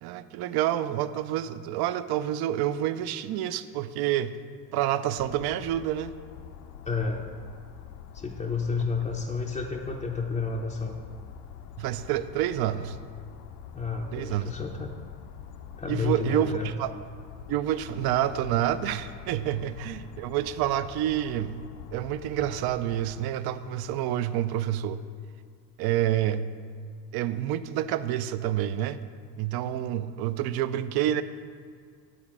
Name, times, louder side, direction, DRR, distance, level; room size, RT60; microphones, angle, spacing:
voice 1, 0.0-4.4 4.7-6.1 8.8-8.9 11.8-13.0 14.1-14.5 15.9-16.9 17.5-21.6 21.9-25.0 25.8-26.5 27.1-29.0 29.4-31.2, right 12 dB, 50° right, 13 dB, 0.6 m, -28 dB
sound 1, 5.2-23.3, left 8 dB, 60° left, 0.7 m, -45 dB
voice 2, 6.9-7.3 8.1-11.0 13.7-14.9 15.8-16.7, left 4 dB, 15° left, -1 dB, 0.6 m, -30 dB
10.5 x 4.0 x 7.3 m, 2.1 s
supercardioid pair, 90°, 49 cm